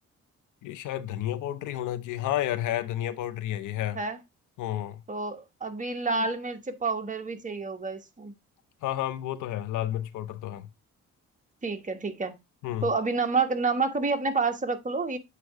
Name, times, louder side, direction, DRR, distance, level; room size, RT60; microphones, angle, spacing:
voice 1, 0.6-4.0 4.6-5.0 8.8-10.7 12.6-12.9, left 12 dB, 80° left, 0.7 m, -31 dB
voice 2, 5.1-8.3 11.6-12.4 12.8-15.2, right 4 dB, 25° right, 1.2 m, -29 dB
8.1 x 2.9 x 4.7 m
cardioid pair, 90°, 30 cm